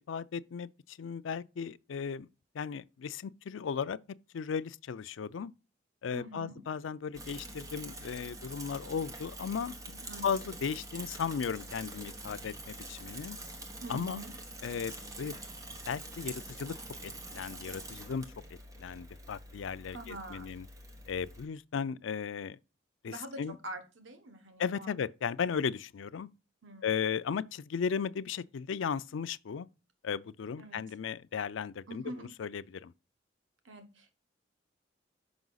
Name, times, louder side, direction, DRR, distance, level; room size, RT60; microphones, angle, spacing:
voice 1, 0.0-2.3 2.5-4.0 4.3-5.5 6.0-9.8 10.2-13.4 13.9-14.2 14.6-15.4 15.9-16.7 17.0-18.3 18.8-20.7 21.1-22.6 23.0-23.6 24.6-26.3 26.8-29.7 30.0-32.1 32.4-32.9, left 6 dB, 90° left, 0.4 m, -36 dB
voice 2, 6.1-6.6 9.9-10.5 13.8-14.3 19.9-20.6 23.1-24.9 25.4-25.6 26.6-26.9 30.6-30.9 31.9-32.3 33.6-34.1, right 1 dB, 85° right, 1.2 m, -45 dB
Bicycle / Mechanisms, 7.1-21.4, right 1 dB, 20° right, 1.0 m, -46 dB
6.0 x 5.5 x 3.9 m
head